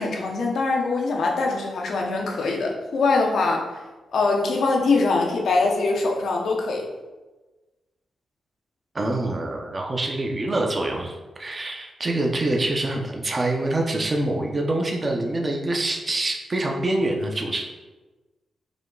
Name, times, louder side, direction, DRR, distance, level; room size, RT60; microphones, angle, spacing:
voice 1, 0.0-3.7 4.1-6.9, left 3 dB, 75° left, 1 dB, 0.7 m, -23 dB
voice 2, 8.9-17.7, right 2 dB, 40° right, 1 dB, 0.7 m, -25 dB
5.0 x 2.2 x 3.8 m, 1.2 s
cardioid pair, 55°, 0 cm